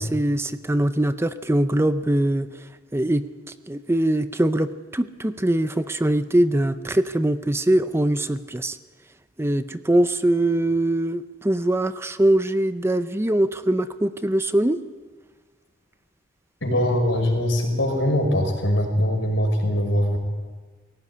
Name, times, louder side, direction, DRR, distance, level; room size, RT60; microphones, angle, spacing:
voice 1, 0.0-8.8 9.4-14.8, right 1 dB, 15° right, 11 dB, 0.6 m, -22 dB
voice 2, 16.6-20.2, equal, 85° left, 2 dB, 5.4 m, -22 dB
20.0 x 16.5 x 9.6 m, 1.4 s
head